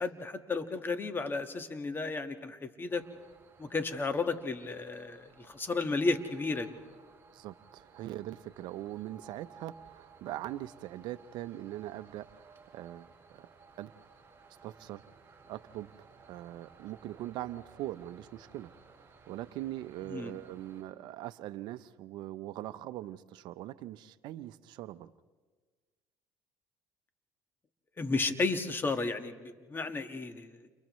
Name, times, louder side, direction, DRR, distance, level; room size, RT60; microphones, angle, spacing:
voice 1, 0.0-3.0 3.6-6.7 20.1-20.3 28.0-30.7, left 3 dB, 25° left, 7 dB, 1.7 m, -33 dB
sound 1, 2.9-20.8, right 5 dB, 30° right, 6.8 m, -58 dB
voice 2, 7.3-13.1 13.8-13.9 14.6-15.0 15.5-15.9 16.3-18.7 19.0-25.1, right 14 dB, 70° right, 14 dB, 0.7 m, -41 dB
30.0 x 29.5 x 3.2 m, 1.4 s
supercardioid pair, 85°, 8 cm